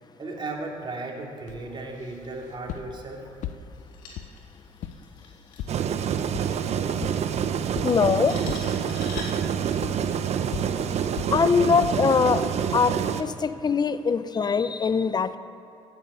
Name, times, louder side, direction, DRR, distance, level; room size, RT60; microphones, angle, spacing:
voice 1, 0.2-3.3 5.9-6.1 7.2-7.4, right 2 dB, 35° right, 0 dB, 2.7 m, -36 dB
sound 1, 1.5-12.3, left 9 dB, 70° left, 0.7 m, -41 dB
sound 2, 3.7-9.5, left 3 dB, 90° left, 2.3 m, -45 dB
sound 3, 5.7-13.2, right 8 dB, 55° right, 0.8 m, -27 dB
voice 2, 7.8-8.4 11.3-12.5 12.7-15.4, left 5 dB, 30° left, 13 dB, 0.7 m, -22 dB
15.5 x 8.5 x 6.8 m, 2.8 s
supercardioid pair, 70°, 13 cm